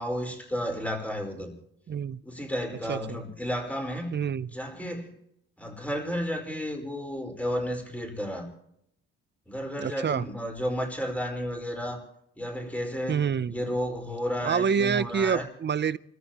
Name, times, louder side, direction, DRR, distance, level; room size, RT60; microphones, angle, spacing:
voice 1, 0.0-1.5 2.2-4.1 4.5-5.1 5.6-8.5 9.5-12.0 12.4-15.5, equal, 5° left, 2 dB, 4.9 m, -32 dB
voice 2, 1.9-2.2 2.9-3.2 4.1-4.5 9.8-10.3 13.1-13.5 14.4-16.0, right 7 dB, 35° right, 16 dB, 0.6 m, -27 dB
30.0 x 14.5 x 3.0 m, 0.75 s
cardioid pair, 90°, 30 cm